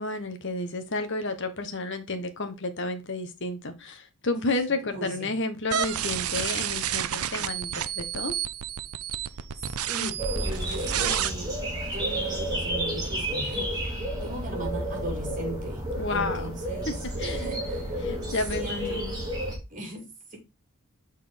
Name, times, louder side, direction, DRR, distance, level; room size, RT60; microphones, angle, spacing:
voice 1, 0.0-8.3 16.0-16.5 16.9-17.5 18.0-19.2, left 2 dB, 55° left, 1.2 m, -31 dB
voice 2, 4.8-5.3 9.9-17.0 17.2-18.2 18.6-19.0 19.7-20.4, right 1 dB, 35° right, 2.5 m, -39 dB
sound 1, 5.7-11.3, right 10 dB, 80° right, 0.6 m, -30 dB
sound 2, 10.2-19.6, equal, 20° right, 2.9 m, -31 dB
6.3 x 4.2 x 5.1 m
head